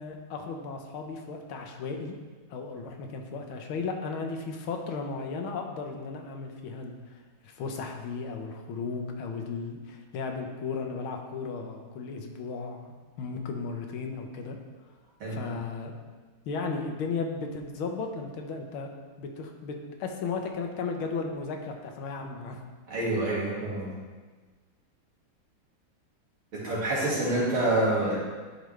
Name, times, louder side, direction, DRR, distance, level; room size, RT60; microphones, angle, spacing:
voice 1, 0.0-2.1 2.5-14.6 15.3-15.9 16.5-18.9 19.2-22.6, left 4 dB, 80° left, 3 dB, 1.7 m, -35 dB
voice 2, 22.9-23.9 26.5-28.2, right 1 dB, 70° right, -6 dB, 2.9 m, -27 dB
11.0 x 5.2 x 3.2 m, 1.4 s
omnidirectional pair, 2.3 m